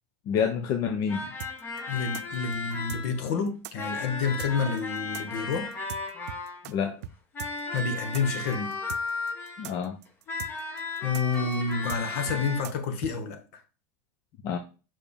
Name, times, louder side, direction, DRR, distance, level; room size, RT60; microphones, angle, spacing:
voice 1, 0.3-1.3 6.7-7.0 9.6-10.0 14.4-14.6, left 7 dB, 45° left, 0.7 m, -28 dB
sound 1, 1.1-3.3 3.8-6.8 7.3-9.8 10.3-12.6, left 3 dB, 25° left, 1.2 m, -35 dB
sound 2, 1.4-6.7 7.0-7.1 7.4-13.1, right 11 dB, 80° right, 0.4 m, -41 dB
voice 2, 1.9-5.7 7.7-8.7 11.0-13.4, left 5 dB, 65° left, 1.3 m, -29 dB
5.5 x 5.0 x 3.5 m
supercardioid pair, 140°, 8 cm